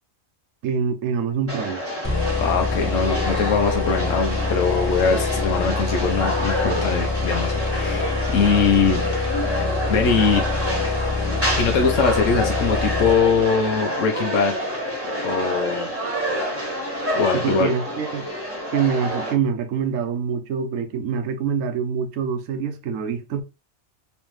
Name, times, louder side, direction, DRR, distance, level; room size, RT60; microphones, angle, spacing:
voice 1, 0.6-1.8 17.3-18.3 18.7-23.4, right 6 dB, 75° right, 1.0 m, -25 dB
sound 1, 1.5-19.3, equal, 10° right, 1.4 m, -27 dB
sound 2, 2.0-13.7, left 4 dB, 10° left, 1.0 m, -26 dB
voice 2, 2.4-9.0 9.9-10.4 11.6-14.5 15.2-15.9 17.1-17.7, left 5 dB, 70° left, 1.0 m, -22 dB
3.4 x 3.2 x 3.1 m
omnidirectional pair, 1.4 m